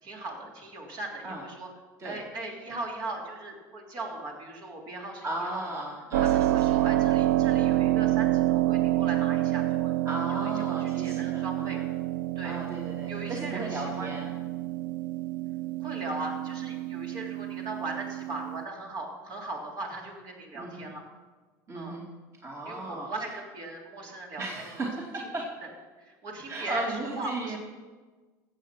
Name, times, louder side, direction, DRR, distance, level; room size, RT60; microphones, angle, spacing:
voice 1, 0.0-1.7 2.0-5.8 6.3-9.9 10.3-11.8 12.3-12.6 13.1-14.1 15.8-21.0 21.7-22.0 22.6-24.9 25.2-25.3 26.0-27.6, right 2 dB, 50° right, -1 dB, 3.3 m, -39 dB
voice 2, 5.2-6.8 10.0-11.8 12.4-14.3 20.5-20.9 21.7-22.1 22.4-23.1 24.4-25.5 26.5-27.6, right 2 dB, 30° right, -2 dB, 2.6 m, -35 dB
Keyboard (musical), 6.1-18.6, right 15 dB, 85° right, 0.4 m, -28 dB
14.5 x 8.1 x 5.9 m, 1.3 s
supercardioid pair, 95°, 9 cm